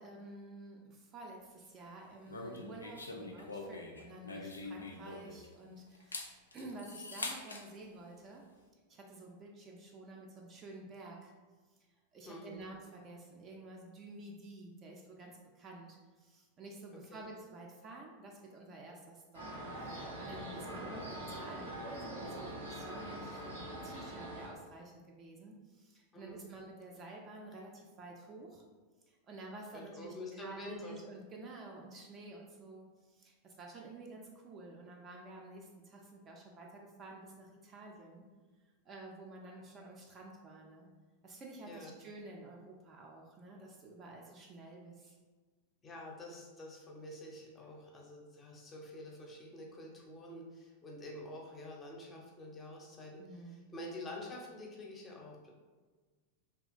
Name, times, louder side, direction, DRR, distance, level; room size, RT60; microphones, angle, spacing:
voice 1, 0.0-8.4 8.9-11.3 12.1-19.5 19.8-28.6 29.1-38.3 38.9-40.9 41.2-45.2 53.2-53.6, right 2 dB, 30° right, -1 dB, 0.4 m, -51 dB
sound 1, 2.3-5.5 5.9-7.7, left 2 dB, 80° left, 0.3 m, -44 dB
voice 2, 12.3-12.6 17.1-17.3 26.1-26.5 29.7-31.0 41.7-41.9 45.8-55.5, left 1 dB, 20° left, -1 dB, 0.6 m, -48 dB
sound 2, 19.3-24.5, right 1 dB, 80° right, 1.0 m, -43 dB
2.8 x 2.3 x 2.5 m, 1.4 s
figure-of-eight pair, 90°, 0 cm